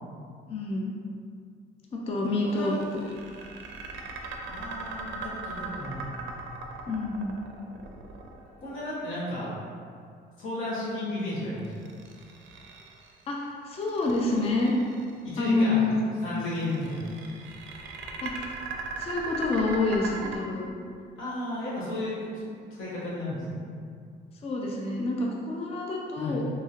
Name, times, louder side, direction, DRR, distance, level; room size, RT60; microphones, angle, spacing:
voice 1, 0.5-0.9 1.9-2.7 3.3-3.5 6.9-7.4 13.3-14.7 15.4-16.0 18.2-18.5 19.0-20.7 24.4-26.4, left 3 dB, 30° left, -2 dB, 0.4 m, -28 dB
voice 2, 2.4-2.8 4.4-6.2 8.6-9.5 10.4-11.7 15.2-15.9 16.2-17.0 21.2-23.7 26.1-26.4, left 1 dB, 85° left, -9 dB, 1.1 m, -34 dB
sound 1, 2.6-8.8 11.6-13.2 13.8-15.1 16.4-20.4, right 4 dB, 75° right, 0.4 m, -39 dB
2.9 x 2.7 x 2.4 m, 2.3 s
cardioid pair, 90°, 20 cm